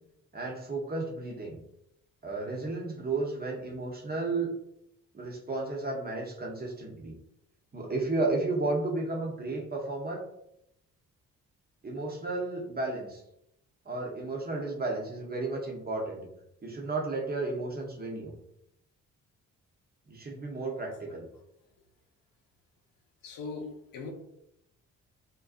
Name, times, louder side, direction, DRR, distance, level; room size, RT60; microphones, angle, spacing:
voice 1, 0.3-1.6 2.2-4.5 5.1-7.2 7.7-10.2 11.8-13.2 13.8-16.3 16.6-18.3 20.1-21.3, right 3 dB, 30° right, 0.8 m, -33 dB
voice 2, 23.2-24.1, left 4 dB, 75° left, 0.6 m, -39 dB
2.5 x 2.2 x 2.4 m
supercardioid pair, 50°, 34 cm